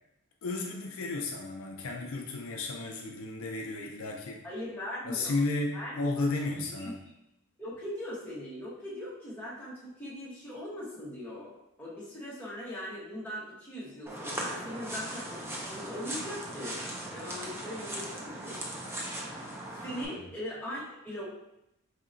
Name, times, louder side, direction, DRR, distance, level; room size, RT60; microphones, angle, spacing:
voice 1, 0.4-4.4 5.1-7.0 20.1-20.3, left 2 dB, 65° left, 1 dB, 0.4 m, -33 dB
voice 2, 4.4-5.4 5.7-6.9 7.6-11.5 11.8-16.8 17.1-18.6 19.3-19.5 19.8-21.3, equal, 10° left, -8 dB, 1.0 m, -40 dB
sound 1, 14.1-20.1, right 1 dB, 10° right, 0.4 m, -38 dB
4.1 x 2.8 x 2.5 m, 0.84 s
head